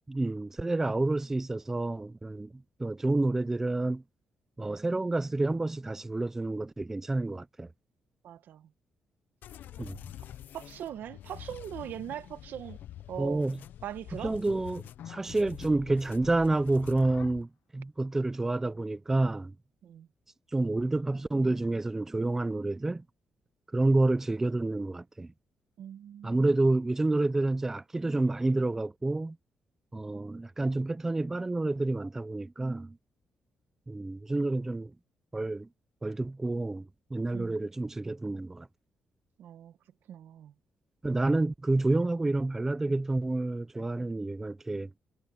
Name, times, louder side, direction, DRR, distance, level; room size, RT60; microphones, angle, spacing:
voice 1, 0.1-2.5 2.8-4.0 4.6-7.7 9.8-10.0 13.2-13.6 14.2-19.5 20.5-23.0 23.7-25.3 26.2-29.4 29.9-33.0 33.9-34.9 35.3-35.7 36.0-38.7 41.0-44.9, right 2 dB, 10° right, 0.5 m, -29 dB
voice 2, 8.2-8.7 10.5-12.8 13.1-13.4 13.8-14.3 19.8-20.1 25.8-26.5 37.3-37.6 39.4-39.7 40.1-40.5, right 10 dB, 70° right, 1.1 m, -41 dB
sound 1, 9.4-17.4, left 12 dB, 70° left, 0.6 m, -46 dB
cardioid pair, 170°, 3 cm